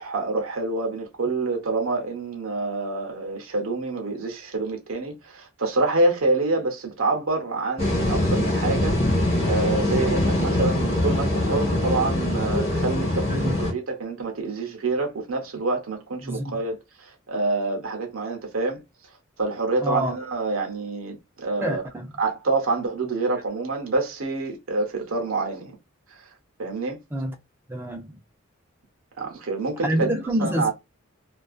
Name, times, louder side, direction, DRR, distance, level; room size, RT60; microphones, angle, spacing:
voice 1, 0.0-18.8 19.4-21.8 22.2-25.8 26.6-27.0 29.2-30.7, right 3 dB, 75° right, 0.7 m, -27 dB
sound 1, 7.8-13.7, left 1 dB, 30° left, 1.0 m, -23 dB
voice 2, 16.2-16.6 19.8-20.2 21.6-22.1 27.1-27.3 27.7-28.2 29.8-30.7, right 1 dB, 10° right, 0.4 m, -27 dB
2.5 x 2.3 x 2.3 m
head